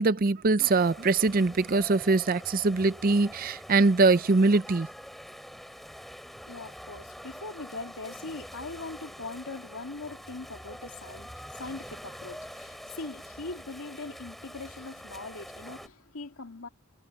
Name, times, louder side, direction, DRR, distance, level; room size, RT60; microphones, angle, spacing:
voice 1, 0.0-4.9, right 3 dB, 40° right, 0.6 m, -23 dB
sound 1, 0.6-15.9, equal, ahead, 5.4 m, -45 dB
voice 2, 6.4-16.7, left 3 dB, 75° left, 2.2 m, -41 dB
head